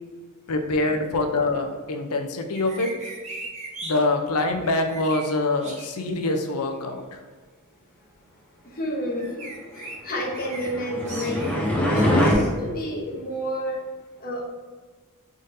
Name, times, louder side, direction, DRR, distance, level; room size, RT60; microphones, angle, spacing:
voice 1, 0.5-2.9 3.8-7.2, left 2 dB, 85° left, 5 dB, 0.5 m, -25 dB
sound 1, 2.5-3.9 4.6-5.2 5.6-5.9 9.2-10.0 10.3-10.7 11.0-11.6 12.0-12.5, right 2 dB, 30° right, 0.8 m, -38 dB
voice 2, 8.6-13.8 14.2-14.4, equal, 40° left, -2 dB, 0.9 m, -30 dB
sound 2, 10.4-12.3, equal, 5° left, 0.6 m, -23 dB
3.9 x 3.7 x 2.6 m, 1.4 s
head